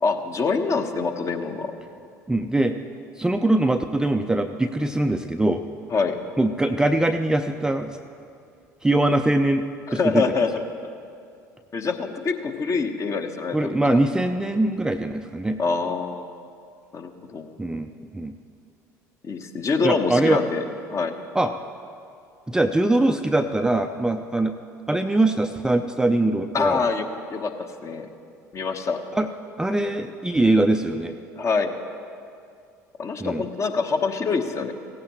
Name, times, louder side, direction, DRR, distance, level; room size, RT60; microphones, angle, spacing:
voice 1, 0.0-1.7 5.9-6.1 9.9-10.5 11.7-14.0 15.6-16.3 16.9-17.5 19.2-20.6 20.9-21.1 26.5-28.1 28.5-29.0 31.4-31.7 33.0-34.7, left 4 dB, 35° left, 7 dB, 1.0 m, -25 dB
voice 2, 2.3-2.8 3.2-5.6 6.4-8.0 8.8-9.6 9.9-10.2 13.5-15.6 17.6-18.3 19.8-20.4 21.3-21.5 22.5-24.5 24.9-26.8 29.1-29.3 29.6-31.1 33.2-33.4, right 2 dB, 5° right, 7 dB, 0.5 m, -22 dB
16.5 x 15.0 x 3.0 m, 2.4 s
figure-of-eight pair, 65°, 9 cm